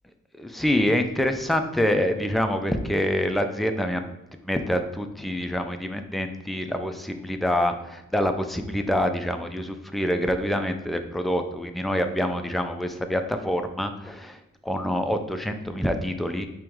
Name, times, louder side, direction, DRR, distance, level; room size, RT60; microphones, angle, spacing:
voice 1, 0.4-4.0 4.4-16.5, equal, ahead, 6 dB, 0.4 m, -26 dB
4.5 x 3.0 x 3.6 m, 0.93 s
wide cardioid pair, 40°, 34 cm